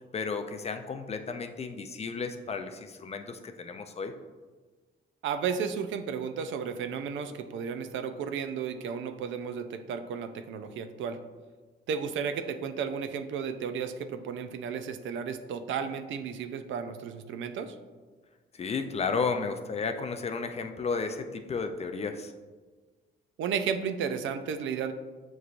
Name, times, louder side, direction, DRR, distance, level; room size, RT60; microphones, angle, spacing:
voice 1, 0.1-4.1 18.5-22.3, left 4 dB, 30° left, 7 dB, 0.4 m, -33 dB
voice 2, 5.2-11.2 11.9-17.8 23.4-24.9, right 6 dB, 75° right, 8 dB, 0.4 m, -33 dB
6.7 x 3.0 x 2.5 m, 1.3 s
cardioid pair, 90°, 20 cm